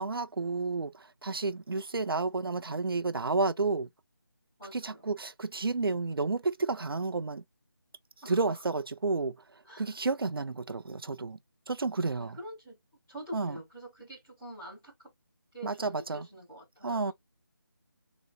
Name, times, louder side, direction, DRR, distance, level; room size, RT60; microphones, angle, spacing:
voice 1, 0.0-3.9 4.7-7.4 8.3-9.4 9.8-11.4 11.7-12.4 13.3-13.6 15.6-16.3 16.8-17.1, right 3 dB, 75° right, 0.6 m, -31 dB
voice 2, 4.6-5.1 8.2-8.4 9.7-9.9 12.2-12.8 13.1-15.1 15.5-17.1, equal, 5° left, 0.9 m, -46 dB
4.0 x 3.0 x 2.2 m
figure-of-eight pair, 180°, 12 cm